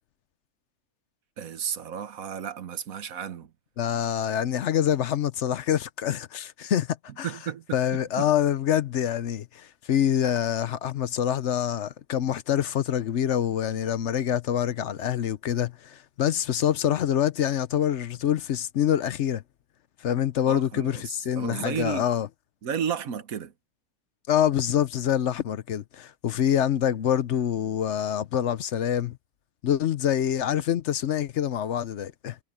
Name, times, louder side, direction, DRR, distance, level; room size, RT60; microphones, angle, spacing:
voice 1, 1.4-3.5 7.2-7.8 8.2-8.3 20.5-22.1 22.6-23.5, right 8 dB, 70° right, 1.5 m, -33 dB
voice 2, 3.8-7.3 7.7-19.4 20.0-22.3 24.3-29.2 29.6-32.4, left 10 dB, 60° left, 0.9 m, -26 dB
omnidirectional pair, 1.5 m